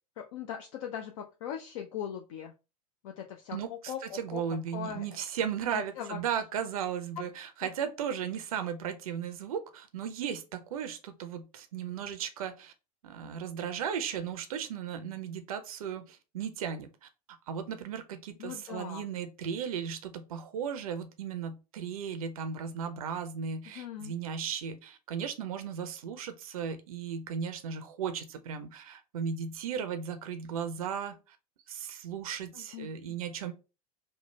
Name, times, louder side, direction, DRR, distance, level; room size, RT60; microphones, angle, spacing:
voice 1, 0.2-2.5 3.0-4.4 4.7-5.0 5.7-6.2 7.2-7.3 7.6-7.7 18.4-19.0 23.7-24.2 32.5-33.2, left 9 dB, 55° left, 0.4 m, -40 dB
voice 2, 3.5-12.7 13.0-17.1 17.5-31.4 31.7-33.5, right 7 dB, 65° right, 0.5 m, -36 dB
3.2 x 2.0 x 3.0 m
figure-of-eight pair, 90°, 20 cm